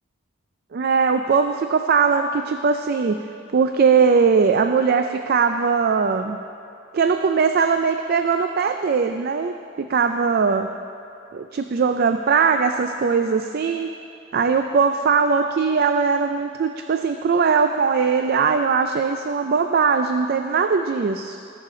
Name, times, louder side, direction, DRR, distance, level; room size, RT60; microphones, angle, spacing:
voice 1, 0.7-3.2 3.5-6.4 6.9-10.7 11.3-13.9 14.3-21.4, right 5 dB, 50° right, 7 dB, 0.4 m, -20 dB
17.5 x 6.6 x 3.8 m, 2.7 s
head